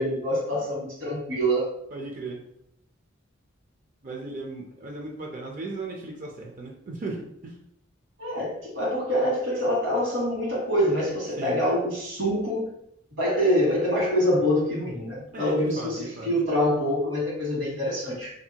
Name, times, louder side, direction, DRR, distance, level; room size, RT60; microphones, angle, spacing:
voice 1, 0.0-1.7 8.2-12.7 13.2-18.3, equal, 70° right, -5 dB, 1.4 m, -25 dB
voice 2, 1.9-2.4 4.0-7.6 11.4-11.6 15.3-16.3, right 2 dB, 45° right, 0 dB, 0.5 m, -36 dB
2.6 x 2.6 x 2.8 m, 0.73 s
head